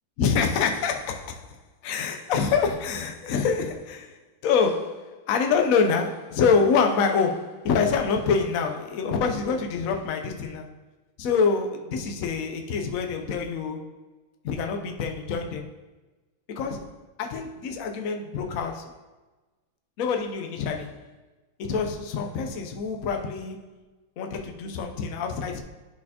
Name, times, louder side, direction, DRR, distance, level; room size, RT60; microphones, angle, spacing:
voice 1, 0.2-1.6 1.8-10.7 11.2-14.0 14.4-15.7 16.5-19.0 20.0-21.1 21.6-23.6 24.2-25.6, left 5 dB, 85° left, 0.7 m, -26 dB
12.0 x 4.2 x 2.8 m
omnidirectional pair, 2.3 m